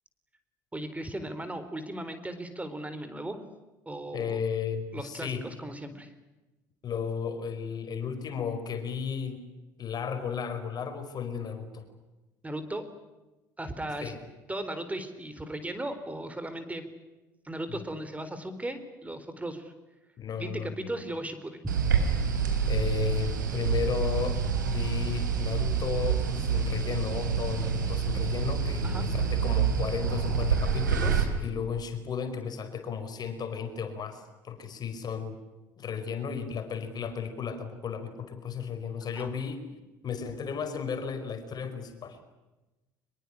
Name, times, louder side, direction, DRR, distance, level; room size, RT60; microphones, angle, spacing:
voice 1, 0.7-3.4 3.9-4.4 4.9-6.1 12.4-12.9 13.6-14.1 14.5-16.8 17.4-19.7 20.4-21.6 28.8-29.0 39.1-39.3, right 1 dB, 15° right, 10 dB, 4.1 m, -37 dB
voice 2, 4.1-5.4 6.8-9.4 9.8-11.8 14.0-14.2 17.7-17.8 20.2-20.9 22.7-35.4 35.8-39.6 40.0-42.2, left 6 dB, 45° left, 8 dB, 5.0 m, -34 dB
sound 1, 21.7-31.2, right 6 dB, 85° right, 3.6 m, -27 dB
24.5 x 22.5 x 10.0 m, 1.1 s
hypercardioid pair, 60°, 10 cm